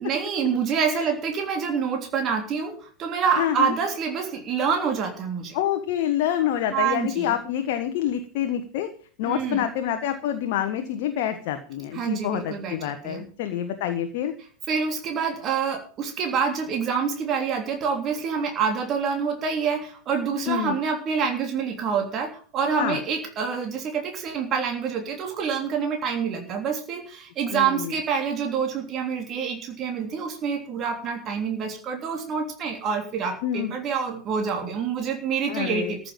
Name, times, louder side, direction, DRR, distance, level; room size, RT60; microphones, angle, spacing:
voice 1, 0.0-5.5 6.7-7.3 9.2-9.7 11.9-13.2 14.7-36.0, right 6 dB, 30° right, 3 dB, 3.3 m, -27 dB
voice 2, 3.4-3.7 5.5-8.9 9.2-14.3 20.5-20.8 22.8-23.0 27.5-27.9 33.4-33.7 35.5-35.9, left 10 dB, 50° left, 7 dB, 1.3 m, -27 dB
14.0 x 7.0 x 7.4 m, 0.43 s
figure-of-eight pair, 90°, 0 cm